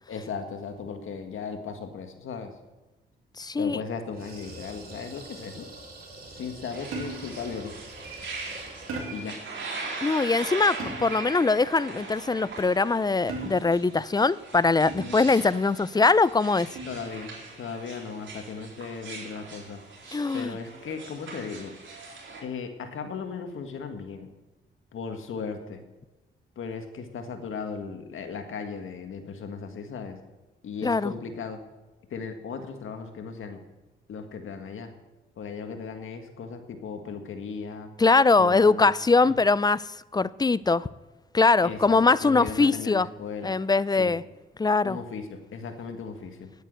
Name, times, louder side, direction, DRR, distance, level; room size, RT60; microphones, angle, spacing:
voice 1, 0.1-2.5 3.6-5.7 6.3-7.7 9.1-9.4 15.0-15.2 16.9-19.8 20.3-21.7 22.4-24.3 24.9-25.8 26.6-30.2 30.6-31.6 32.1-33.6 34.1-34.9 35.4-37.9 38.4-38.9 39.2-39.3 41.6-43.5 44.0-44.2 44.8-46.5, left 5 dB, 75° left, 1.8 m, -37 dB
voice 2, 3.4-3.8 10.0-16.7 20.1-20.6 30.8-31.1 38.0-39.9 40.1-40.9 41.3-43.1 43.4-44.2 44.6-45.0, left 3 dB, 20° left, 0.4 m, -22 dB
sound 1, 4.1-9.4, right 2 dB, 45° right, 3.6 m, -45 dB
sound 2, 6.7-22.4, right 3 dB, 65° right, 4.0 m, -40 dB
sound 3, 6.9-7.4 8.9-9.4 10.8-11.3 13.3-13.9 14.9-15.3 16.8-17.1, right 3 dB, 90° right, 2.5 m, -37 dB
10.0 x 9.3 x 8.0 m
cardioid pair, 70°, 21 cm